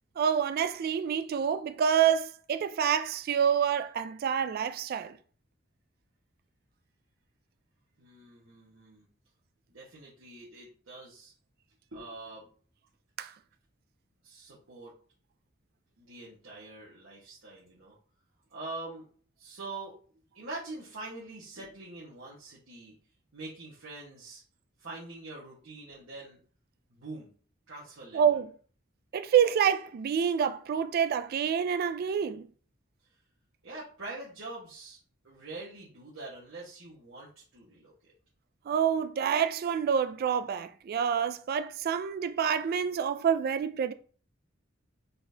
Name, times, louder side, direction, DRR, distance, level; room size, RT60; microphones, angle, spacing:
voice 1, 0.2-5.2 13.2-13.3 28.1-28.5 29.1-32.5 38.7-43.9, right 8 dB, 50° right, 0.3 m, -27 dB
voice 2, 8.0-9.1 9.7-11.3 11.9-12.5 14.2-14.9 16.0-18.0 18.5-20.0 20.3-22.9 23.3-24.4 24.8-26.4 26.9-27.3 27.7-28.2 33.0-33.2 33.6-35.0 35.2-38.1, right 2 dB, 80° right, 1.5 m, -44 dB
4.3 x 4.0 x 2.8 m
head